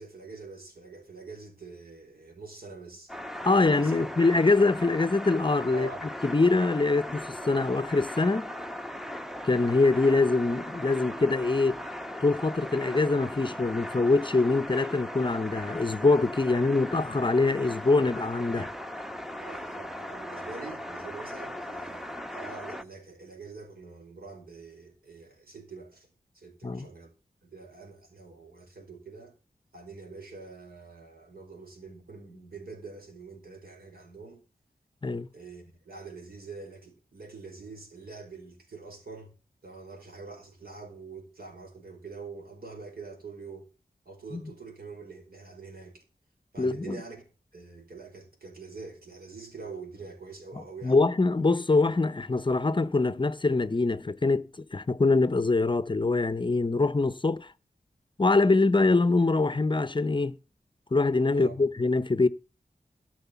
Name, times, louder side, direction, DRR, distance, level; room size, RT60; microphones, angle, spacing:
voice 1, 0.0-3.1 3.5-4.1 5.7-6.0 16.5-16.6 19.4-26.1 26.3-27.1 27.4-29.3 29.7-34.4 35.3-39.3 39.6-43.7 44.0-46.0 46.5-47.2 47.5-51.0 61.3-61.5, right 4 dB, 75° right, 4.9 m, -45 dB
sound 1, 3.1-22.8, left 1 dB, ahead, 0.8 m, -38 dB
voice 2, 3.4-5.9 6.2-8.5 9.4-11.8 12.2-18.7 26.6-26.9 35.0-35.3 44.3-44.4 46.6-47.0 50.8-57.5 58.2-60.3 60.9-62.3, left 3 dB, 30° left, 0.6 m, -24 dB
13.5 x 6.3 x 6.9 m
wide cardioid pair, 100°, 16 cm